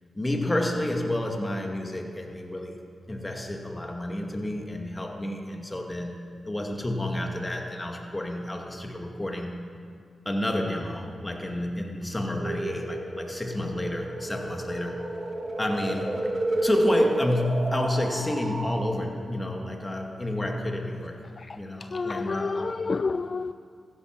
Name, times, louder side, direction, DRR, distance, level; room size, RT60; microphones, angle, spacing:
voice 1, 0.1-2.8 3.1-6.2 6.4-9.6 10.3-15.0 15.6-16.3 16.6-21.2 21.5-22.7, left 1 dB, 20° left, 2 dB, 2.1 m, -30 dB
sound 1, 12.3-18.7, right 1 dB, 35° right, 2.0 m, -30 dB
voice 2, 21.9-23.5, left 4 dB, 50° left, 12 dB, 0.3 m, -29 dB
15.0 x 10.5 x 6.0 m, 2.3 s
cardioid pair, 55°, 0 cm